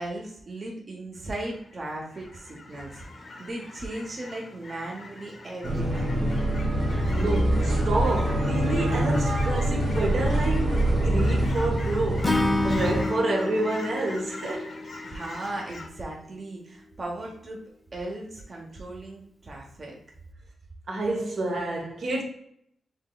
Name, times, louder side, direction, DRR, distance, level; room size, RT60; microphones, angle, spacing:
voice 1, 0.0-6.2 15.0-17.6 17.9-20.0, right 1 dB, 35° right, 0.9 m, -37 dB
Fowl / Chirp tweet, 1.1-15.9, left 2 dB, 45° left, 0.7 m, -43 dB
sound 1, 5.6-13.0, right 1 dB, 85° right, 1.6 m, -25 dB
voice 2, 7.0-14.7 20.9-22.2, right 2 dB, 65° right, 1.1 m, -29 dB
Acoustic guitar / Strum, 12.2-15.5, left 2 dB, 15° left, 0.4 m, -29 dB
5.7 x 3.2 x 2.3 m
wide cardioid pair, 135°, 0 cm